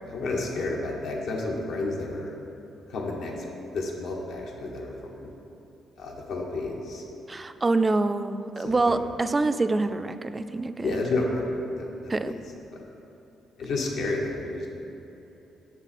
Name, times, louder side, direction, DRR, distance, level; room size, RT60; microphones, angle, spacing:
voice 1, 0.0-2.3 2.9-3.3 3.7-5.3 6.0-7.0 8.6-9.0 10.8-12.3 13.6-14.7, left 2 dB, 75° left, -1 dB, 1.1 m, -31 dB
voice 2, 7.3-11.0 12.1-12.3, right 3 dB, 25° right, 10 dB, 0.3 m, -26 dB
7.1 x 6.2 x 4.2 m, 3.0 s
cardioid pair, 90°, 0 cm